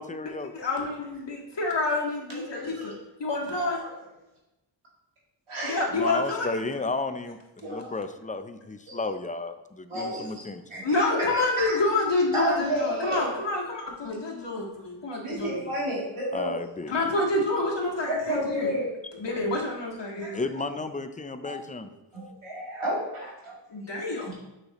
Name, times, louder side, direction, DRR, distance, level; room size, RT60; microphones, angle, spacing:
voice 1, 0.0-0.5 5.9-10.6 16.3-17.2 20.3-21.9, left 3 dB, 15° left, 9 dB, 0.5 m, -33 dB
voice 2, 0.5-2.8 3.2-3.8 5.6-6.5 10.8-15.6 16.9-18.7 19.1-20.5 23.7-24.3, left 2 dB, 60° left, -3 dB, 1.9 m, -28 dB
voice 3, 2.3-2.9 3.7-3.9 5.5-5.8 7.6-7.9 8.9-9.0 9.9-11.8 12.3-13.3 15.2-16.6 18.1-18.9 20.2-20.3 21.4-21.5 22.1-23.5 24.1-24.3, equal, 80° right, -5 dB, 2.3 m, -31 dB
6.6 x 5.7 x 3.1 m, 0.97 s
cardioid pair, 45°, 49 cm